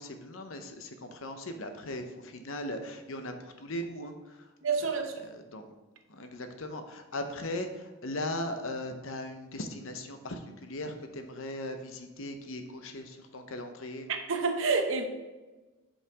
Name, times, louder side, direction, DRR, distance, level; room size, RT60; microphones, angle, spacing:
voice 1, 0.0-4.5 5.2-5.8 6.1-14.1, left 1 dB, 70° left, 6 dB, 0.8 m, -38 dB
voice 2, 4.6-5.3 14.1-15.1, right 4 dB, 65° right, 5 dB, 0.8 m, -28 dB
5.7 x 5.6 x 4.7 m, 1.2 s
head